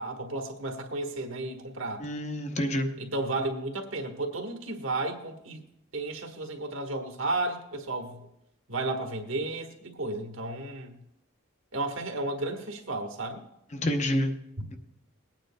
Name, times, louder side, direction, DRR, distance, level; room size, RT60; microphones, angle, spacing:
voice 1, 0.0-2.1 3.0-5.6 5.9-8.3 8.7-11.0 11.7-13.4, right 2 dB, 80° right, 3 dB, 1.3 m, -33 dB
voice 2, 2.0-2.9 13.7-14.4, left 1 dB, 35° left, 5 dB, 0.8 m, -28 dB
21.5 x 9.1 x 2.2 m, 0.81 s
head